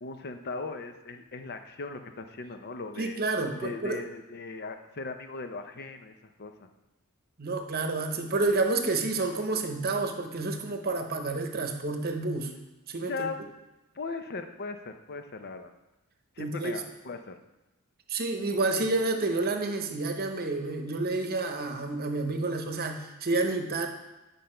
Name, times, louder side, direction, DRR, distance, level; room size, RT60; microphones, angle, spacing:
voice 1, 0.0-3.2 3.6-6.7 12.9-13.4 13.9-15.7 16.4-17.3, left 3 dB, 50° left, 7 dB, 0.7 m, -38 dB
voice 2, 3.0-4.0 7.4-12.5 12.9-13.3 16.4-16.7 18.1-23.9, right 3 dB, 45° right, 5 dB, 0.9 m, -29 dB
9.8 x 5.3 x 4.4 m, 1.0 s
head